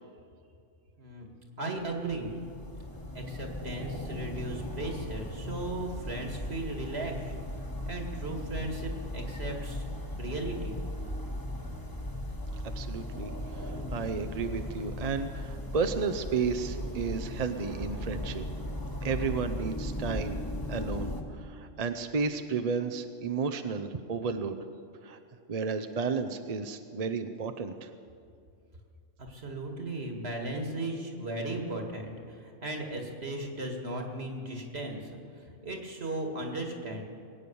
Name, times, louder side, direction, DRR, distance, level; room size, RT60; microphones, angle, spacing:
voice 1, 1.0-1.3 1.6-2.3 3.1-7.4 7.9-9.9 10.2-10.8 29.2-37.0, right 2 dB, 60° right, 2 dB, 2.3 m, -36 dB
sound 1, 1.8-21.2, left 1 dB, 20° left, 1.5 m, -37 dB
voice 2, 12.8-18.4 19.0-20.4 20.7-24.6 25.0-25.2 25.5-27.9, right 5 dB, 40° right, 8 dB, 0.6 m, -32 dB
21.5 x 9.5 x 7.0 m, 2.4 s
omnidirectional pair, 1.2 m